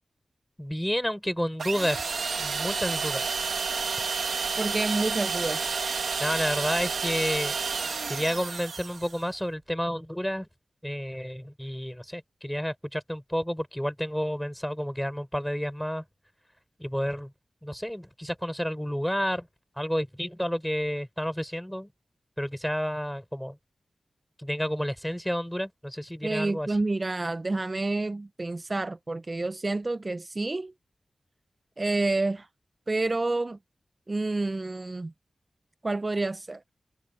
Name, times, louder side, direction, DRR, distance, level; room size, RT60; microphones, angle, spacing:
voice 1, 0.6-3.5 6.2-7.6 8.1-10.5 10.8-16.0 16.8-17.3 17.6-19.5 19.8-21.9 22.4-23.6 24.4-26.8, equal, 5° left, 5.1 m, -30 dB
sound 1, 1.6-9.2, right 5 dB, 85° right, 1.8 m, -30 dB
voice 2, 4.6-5.8 26.2-30.7 31.8-32.5 32.9-33.6 34.1-35.1 35.8-36.6, right 2 dB, 40° right, 0.7 m, -29 dB
cardioid pair, 55°, 0 cm